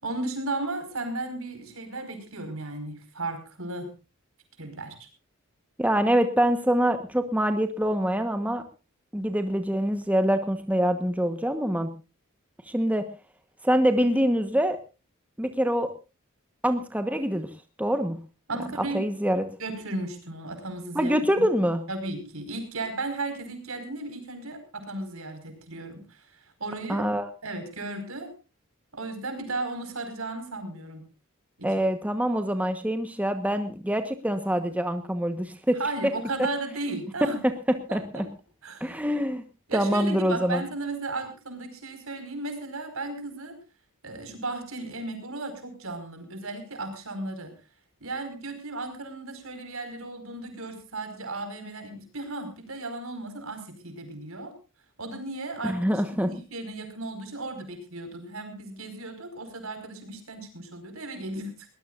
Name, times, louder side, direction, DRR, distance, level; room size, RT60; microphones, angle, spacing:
voice 1, 0.0-3.9 4.6-5.1 18.5-19.0 19.6-21.1 21.9-27.1 27.4-28.3 28.9-31.0 31.6-31.7 35.8-37.4 37.9-38.2 38.6-39.0 39.7-43.6 44.0-47.5 48.0-54.5 55.0-61.7, right 2 dB, 70° right, 8 dB, 5.0 m, -35 dB
voice 2, 5.8-8.6 9.1-11.9 12.7-13.0 13.6-14.8 15.4-15.9 16.6-17.5 17.8-18.2 18.9-19.5 20.9-21.8 26.9-27.3 31.6-35.8 37.9-38.2 38.8-39.4 39.7-40.6 55.6-56.3, equal, 5° right, 8 dB, 1.1 m, -25 dB
22.0 x 19.0 x 2.5 m, 0.31 s
head